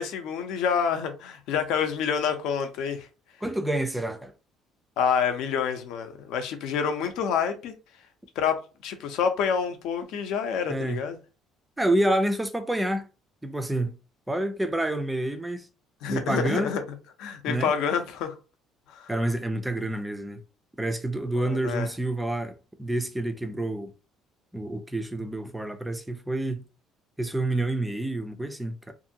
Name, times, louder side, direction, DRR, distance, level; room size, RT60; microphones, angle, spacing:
voice 1, 0.0-3.1 5.0-7.7 8.4-11.2 16.0-16.8 17.2-18.3 18.9-19.1 21.3-21.9, left 7 dB, 70° left, 0.6 m, -28 dB
voice 2, 3.4-4.3 10.7-11.0 11.8-13.1 13.4-14.0 14.3-15.7 16.1-16.8 17.5-17.7 19.1-20.4 20.8-23.9 24.5-26.6 27.2-28.9, right 1 dB, 5° right, 0.4 m, -28 dB
2.7 x 2.5 x 2.7 m
cardioid pair, 150°, 0 cm